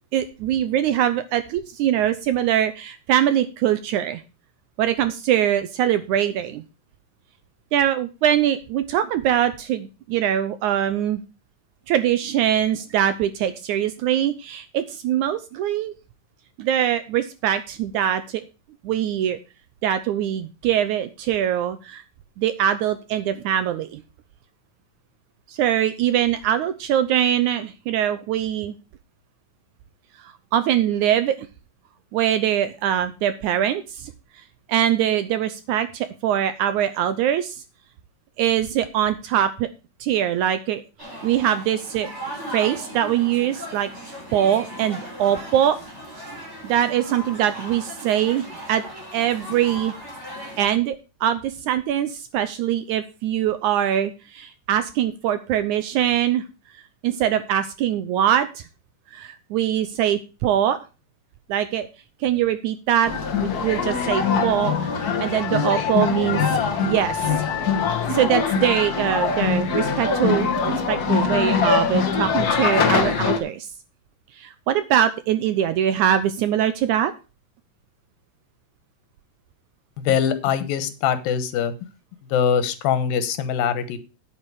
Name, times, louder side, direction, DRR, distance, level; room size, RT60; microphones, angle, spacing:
voice 1, 0.1-4.2 4.8-6.6 7.7-11.2 11.9-15.9 16.6-18.4 18.8-19.4 19.8-22.0 22.4-24.0 25.5-28.8 30.2-31.5 32.1-34.1 34.7-37.6 38.4-39.7 40.0-40.8 41.2-42.1 42.5-43.9 44.3-45.8 46.6-48.8 49.1-49.9 50.6-51.0 51.2-56.4 57.0-58.6 59.1-60.8 61.5-61.9 62.2-63.1 63.4-67.4 68.1-73.7 74.4-77.1, right 10 dB, 75° right, 12 dB, 1.9 m, -22 dB
sound 1, 41.0-50.6, equal, 20° right, 4.8 m, -37 dB
sound 2, 63.1-73.4, left 6 dB, 50° left, 1.1 m, -23 dB
voice 2, 80.0-81.7 82.3-84.0, left 8 dB, 85° left, 12 dB, 2.9 m, -22 dB
9.2 x 9.1 x 4.7 m, 0.31 s
omnidirectional pair, 4.0 m